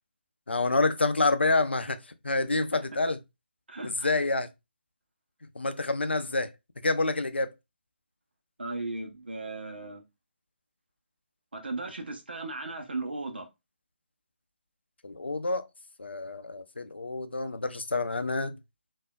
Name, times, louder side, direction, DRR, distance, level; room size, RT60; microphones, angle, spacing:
voice 1, 0.5-3.2 3.8-4.5 5.6-6.5 6.8-7.5 15.0-15.7 16.0-18.6, left 3 dB, 75° left, 0.5 m, -28 dB
voice 2, 3.7-4.1 8.6-10.0 11.5-13.5, right 2 dB, 65° right, 0.9 m, -36 dB
3.4 x 2.6 x 2.3 m
figure-of-eight pair, 150°, 6 cm